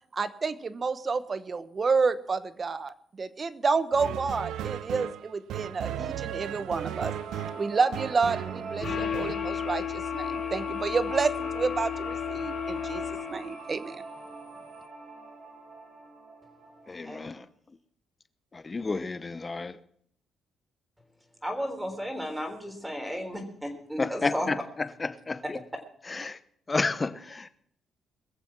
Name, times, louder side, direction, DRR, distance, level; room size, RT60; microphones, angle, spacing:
voice 1, 0.1-7.1 7.6-14.0, right 4 dB, 35° right, 1.0 m, -29 dB
sound 1, 3.9-9.3, right 10 dB, 80° right, 0.6 m, -36 dB
sound 2, 6.4-17.4, right 3 dB, 65° right, 6.1 m, -43 dB
sound 3, 8.8-13.6, left 9 dB, 50° left, 1.2 m, -33 dB
voice 2, 16.9-17.4 18.7-19.7 24.0-24.3 25.3-25.4 26.2-26.4 26.7-27.5, left 3 dB, 25° left, 1.0 m, -30 dB
voice 3, 21.4-24.6 25.4-25.5, equal, 5° right, 3.7 m, -34 dB
21.5 x 7.2 x 6.1 m
cardioid pair, 90°, 0 cm